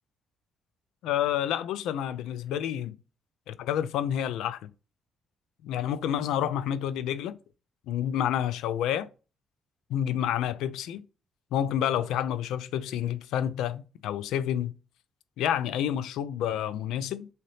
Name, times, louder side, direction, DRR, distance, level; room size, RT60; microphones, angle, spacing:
voice 1, 1.0-2.9 3.5-4.7 5.6-7.4 7.9-9.1 9.9-11.0 11.5-14.7 15.4-17.3, left 10 dB, 90° left, 0.3 m, -29 dB
3.7 x 2.8 x 3.3 m
cardioid pair, 90°, 0 cm